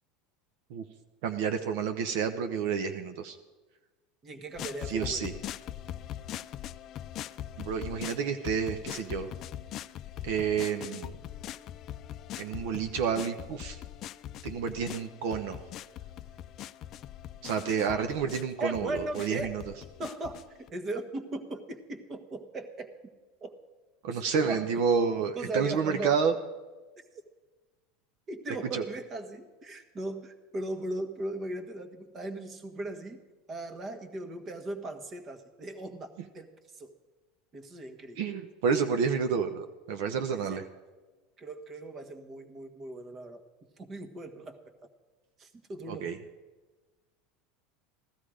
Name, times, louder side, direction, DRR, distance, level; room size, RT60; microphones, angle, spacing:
voice 1, 1.2-3.4 4.9-5.3 7.6-9.3 10.2-11.1 12.4-13.8 14.4-15.6 17.4-19.6 24.0-26.3 28.7-28.8 38.2-40.6 45.9-46.2, right 6 dB, 70° right, 7 dB, 0.9 m, -29 dB
voice 2, 4.2-5.4 18.6-19.5 20.0-22.9 23.4-23.5 24.1-24.6 25.3-26.1 28.3-33.2 33.5-36.5 36.8-36.9 37.5-38.4 40.3-40.7 41.4-43.4 43.8-44.6 45.4-46.1, right 2 dB, 35° right, 8 dB, 1.5 m, -38 dB
sound 1, 4.5-20.7, left 11 dB, 45° left, 0.4 m, -42 dB
16.0 x 12.5 x 5.0 m, 1.2 s
supercardioid pair, 115°, 0 cm